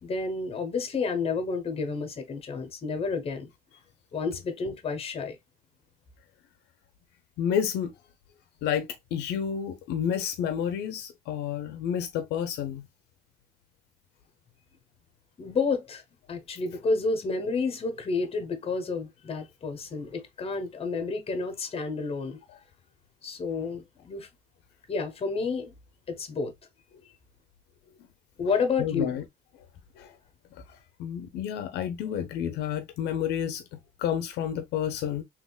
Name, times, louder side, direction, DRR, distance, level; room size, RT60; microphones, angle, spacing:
voice 1, 0.0-3.5 4.1-5.4 15.4-16.0 16.3-22.4 23.2-24.3 24.9-25.7 26.1-26.5 28.4-29.2, left 4 dB, 35° left, 1.0 m, -30 dB
voice 2, 7.4-7.9 8.6-12.9 28.8-29.2 30.0-30.1 31.0-35.2, left 9 dB, 80° left, 0.6 m, -30 dB
3.5 x 3.0 x 2.3 m
cardioid pair, 110°, 17 cm